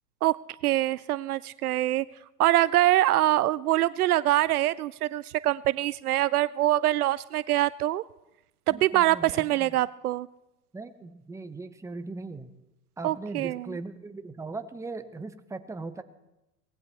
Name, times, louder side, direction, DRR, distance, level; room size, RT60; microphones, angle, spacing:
voice 1, 0.6-2.0 2.4-8.0 8.7-10.3 13.0-13.7, right 14 dB, 65° right, 19 dB, 0.5 m, -24 dB
voice 2, 8.7-9.8 10.7-12.5 13.0-16.0, right 3 dB, 5° right, 10 dB, 0.9 m, -39 dB
23.5 x 19.0 x 3.0 m, 0.96 s
figure-of-eight pair, 90°, 48 cm